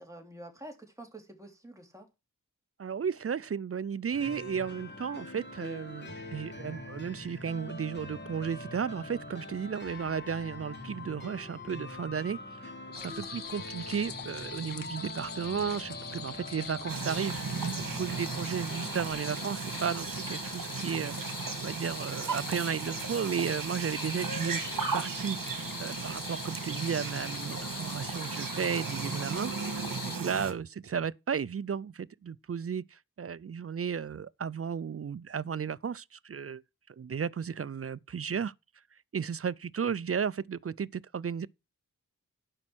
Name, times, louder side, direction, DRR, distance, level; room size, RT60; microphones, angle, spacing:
voice 1, 0.0-2.1 12.9-13.1, right 1 dB, 10° right, 3.1 m, -48 dB
voice 2, 2.8-17.6 18.0-21.2 21.6-36.6 36.9-38.5 39.1-41.5, right 7 dB, 45° right, 0.4 m, -34 dB
sound 1, 4.1-19.1, left 2 dB, 30° left, 3.4 m, -43 dB
sound 2, 12.9-30.2, left 6 dB, 75° left, 1.0 m, -43 dB
sound 3, 16.9-30.5, right 5 dB, 70° right, 2.0 m, -36 dB
11.5 x 5.5 x 6.1 m
wide cardioid pair, 75°, 33 cm